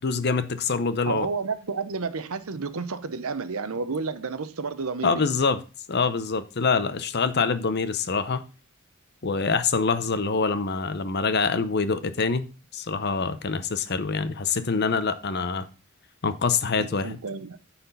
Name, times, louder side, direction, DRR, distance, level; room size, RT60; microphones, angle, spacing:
voice 1, 0.0-1.3 5.0-5.6 5.9-8.4 9.2-12.4 12.7-15.7 16.2-17.2, left 4 dB, 50° left, 0.8 m, -25 dB
voice 2, 1.1-5.2 16.8-17.6, right 4 dB, 75° right, 0.8 m, -31 dB
9.8 x 4.3 x 5.3 m
head